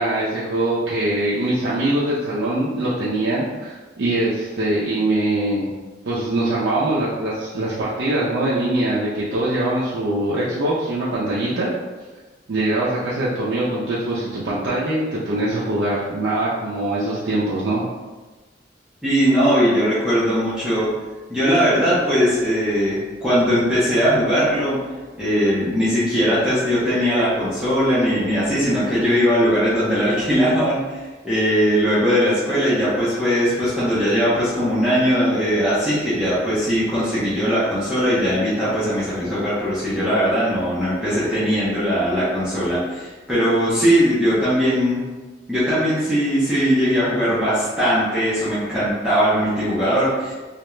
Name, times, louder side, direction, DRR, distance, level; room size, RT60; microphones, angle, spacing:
voice 1, 0.0-5.7 6.1-11.7 12.5-17.8, right 1 dB, 70° right, -8 dB, 0.4 m, -22 dB
voice 2, 19.0-20.9 21.3-24.8 25.2-45.0 45.5-50.3, equal, 5° right, -12 dB, 0.5 m, -20 dB
2.3 x 2.1 x 3.0 m, 1.3 s
head